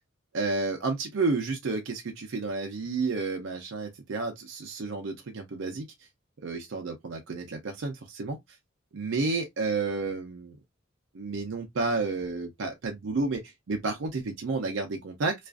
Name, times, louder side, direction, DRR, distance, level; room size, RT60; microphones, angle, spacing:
voice 1, 0.3-5.9 6.4-8.4 8.9-10.5 11.1-15.3, right 3 dB, 65° right, 0.5 m, -31 dB
2.4 x 2.3 x 2.2 m
head